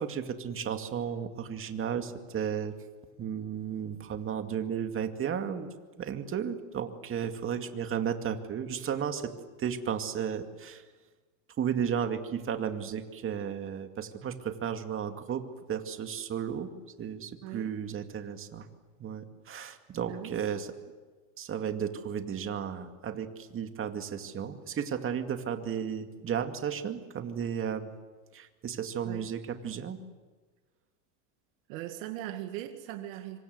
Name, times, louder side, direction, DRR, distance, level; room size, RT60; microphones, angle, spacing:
voice 1, 0.0-2.7 3.2-5.7 6.0-9.3 9.6-10.8 11.6-16.7 17.0-18.7 19.0-20.7 21.4-27.9 28.3-30.0, right 8 dB, 30° right, 7 dB, 2.3 m, -34 dB
voice 2, 17.4-17.7 20.0-20.4 29.0-29.3 31.7-33.4, right 13 dB, 65° right, 6 dB, 2.1 m, -39 dB
26.0 x 24.5 x 8.0 m, 1.3 s
supercardioid pair, 120°, 43 cm